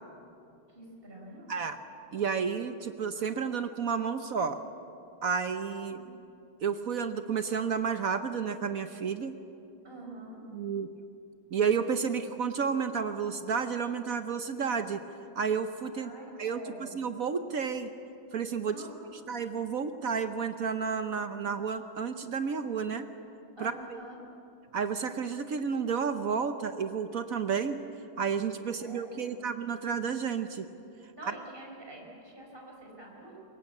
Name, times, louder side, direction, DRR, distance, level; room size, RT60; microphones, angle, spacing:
voice 1, 0.7-1.5 5.9-6.1 9.8-10.4 15.9-17.0 18.7-19.0 23.6-24.2 28.7-29.4 31.1-33.4, right 1 dB, 25° right, -1 dB, 5.3 m, -47 dB
voice 2, 2.1-4.6 5.2-6.0 6.6-9.4 10.5-10.9 11.5-15.0 15.3-16.1 16.4-16.6 16.9-17.9 18.3-18.8 19.3-23.1 23.6-24.0 24.7-27.8 28.2-30.7, right 6 dB, 55° right, 9 dB, 1.0 m, -31 dB
24.0 x 22.0 x 8.5 m, 2.8 s
omnidirectional pair, 2.3 m